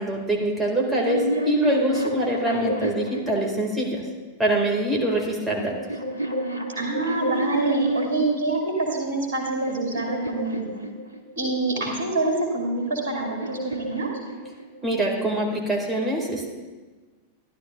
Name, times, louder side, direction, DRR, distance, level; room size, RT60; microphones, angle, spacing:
voice 1, 0.0-4.0 4.4-5.7 14.8-16.5, right 1 dB, 10° right, -1 dB, 1.5 m, -24 dB
sound 1, 0.7-4.1 5.0-8.4 9.1-11.5 12.5-14.9, right 1 dB, 90° left, 0.6 m, -30 dB
voice 2, 6.8-10.7 11.4-14.1, right 2 dB, 65° right, 0 dB, 2.1 m, -26 dB
13.5 x 11.5 x 2.2 m, 1.3 s
figure-of-eight pair, 90°, 0 cm